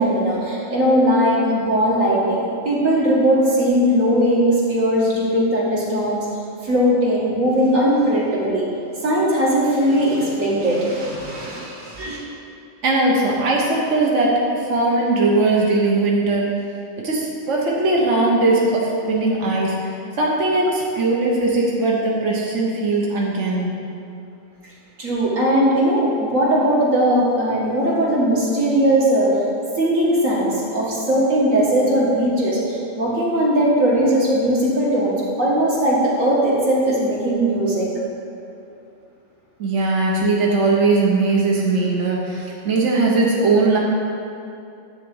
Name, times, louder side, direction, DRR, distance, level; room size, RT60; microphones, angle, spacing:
voice 1, 0.0-6.3 6.6-8.6 9.0-12.2 25.0-29.3 29.8-37.9, right 1 dB, 85° right, -7 dB, 2.5 m, -19 dB
voice 2, 12.8-16.5 17.0-23.7 39.6-43.8, right 2 dB, 65° right, -3 dB, 1.5 m, -19 dB
10.5 x 4.3 x 7.9 m, 2.7 s
omnidirectional pair, 1.3 m